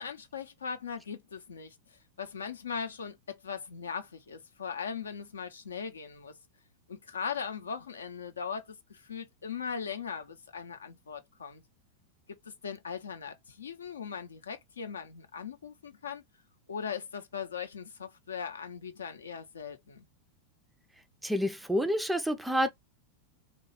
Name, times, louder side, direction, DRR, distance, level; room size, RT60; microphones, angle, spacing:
voice 1, 0.0-6.3 6.9-11.6 12.4-16.2 16.7-20.1, left 6 dB, 70° left, 0.6 m, -39 dB
voice 2, 21.2-22.7, equal, 5° right, 0.4 m, -28 dB
3.0 x 2.2 x 3.2 m
figure-of-eight pair, 90°, 0 cm